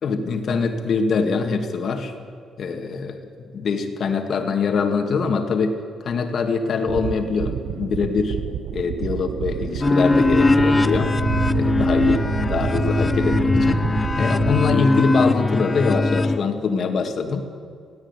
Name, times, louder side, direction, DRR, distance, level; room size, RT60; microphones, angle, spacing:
voice 1, 0.0-2.1 2.6-8.4 8.7-11.2 11.5-13.8 14.2-17.5, left 4 dB, 50° left, 6 dB, 2.1 m, -23 dB
sound 1, 6.9-14.8, right 10 dB, 75° right, 0.7 m, -29 dB
sound 2, 9.8-16.4, left 2 dB, 20° left, 0.6 m, -20 dB
17.5 x 16.5 x 9.9 m, 2.1 s
cardioid pair, 145°, 0 cm